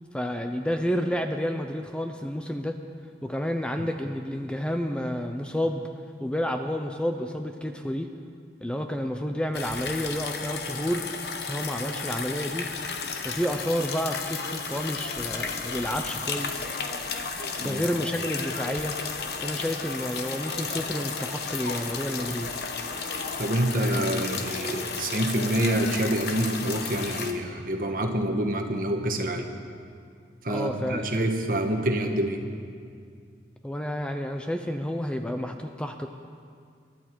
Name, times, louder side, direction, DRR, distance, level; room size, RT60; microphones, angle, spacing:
voice 1, 0.1-2.7 3.2-5.9 6.2-8.1 8.6-11.1 11.4-12.7 13.2-16.7 17.6-18.9 19.4-22.5 30.5-31.1 33.6-36.1, equal, 5° left, 5 dB, 0.5 m, -30 dB
sound 1, 9.5-27.3, left 5 dB, 65° left, 1.0 m, -33 dB
voice 2, 23.4-29.5 30.4-32.4, right 1 dB, 50° right, 4 dB, 1.3 m, -27 dB
23.0 x 11.5 x 4.6 m, 2.3 s
head